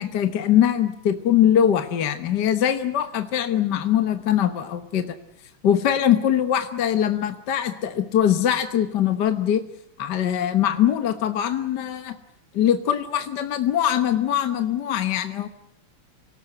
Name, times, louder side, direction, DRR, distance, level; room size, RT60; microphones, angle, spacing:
voice 1, 0.0-5.2 5.6-9.6 10.0-12.2 12.5-15.5, left 10 dB, 55° left, 8 dB, 1.7 m, -22 dB
27.0 x 18.5 x 7.9 m, 0.79 s
omnidirectional pair, 2.4 m